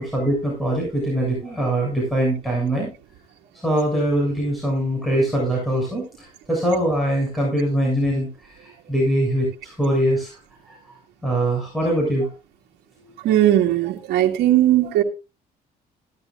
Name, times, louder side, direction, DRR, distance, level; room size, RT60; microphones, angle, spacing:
voice 1, 0.0-2.9 3.6-10.3 10.6-10.8 11.2-12.3, right 1 dB, ahead, -3 dB, 7.0 m, -22 dB
voice 2, 13.2-15.0, right 13 dB, 80° right, -1 dB, 2.1 m, -18 dB
16.0 x 12.5 x 2.5 m, 0.30 s
cardioid pair, 110°, 17 cm